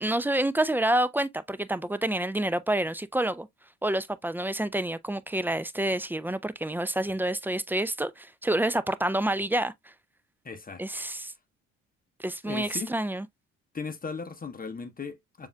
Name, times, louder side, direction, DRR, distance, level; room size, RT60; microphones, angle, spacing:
voice 1, 0.0-3.5 3.8-9.7 10.8-11.3 12.2-13.3, right 1 dB, 5° right, 0.4 m, -28 dB
voice 2, 10.4-10.8 12.4-12.9 13.7-15.5, left 4 dB, 25° left, 1.0 m, -37 dB
7.0 x 2.7 x 2.2 m
figure-of-eight pair, 50°, 37 cm